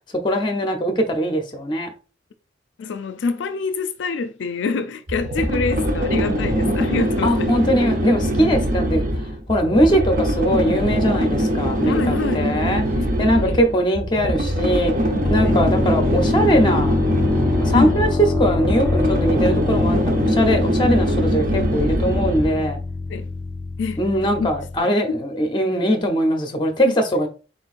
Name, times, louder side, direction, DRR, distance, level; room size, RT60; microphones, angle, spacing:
voice 1, 0.2-1.9 7.2-9.1 9.5-12.8 13.2-14.9 15.3-17.0 17.6-18.1 18.4-22.8 24.0-27.3, equal, 25° left, 0.7 m, -21 dB
voice 2, 2.8-7.6 11.8-12.5 13.0-13.6 15.4-15.6 17.7-18.0 23.1-23.3 23.8-24.0 24.4-24.5 24.8-24.9 26.8-26.9, left 4 dB, 85° left, 0.4 m, -26 dB
sound 1, 5.1-22.7, equal, 50° right, 0.8 m, -22 dB
sound 2, 15.2-24.8, left 3 dB, 10° left, 1.3 m, -24 dB
4.4 x 3.9 x 2.4 m
head